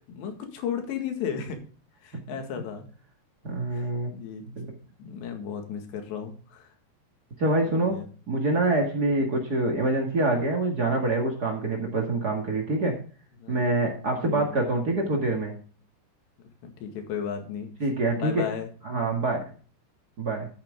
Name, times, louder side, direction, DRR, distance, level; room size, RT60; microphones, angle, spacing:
voice 1, 0.0-1.6 2.0-2.9 3.7-4.4 5.0-6.7 7.7-8.1 9.2-9.4 13.4-13.6 14.1-14.5 14.9-15.0 16.6-17.9 18.2-18.7, left 7 dB, 75° left, 5 dB, 4.0 m, -35 dB
voice 2, 3.4-4.1 4.5-4.7 7.4-8.0 8.3-13.0 13.5-15.6 17.8-18.4 18.8-19.4 20.2-20.5, right 2 dB, 70° right, 1 dB, 0.9 m, -25 dB
12.0 x 8.9 x 3.7 m, 0.39 s
omnidirectional pair, 5.1 m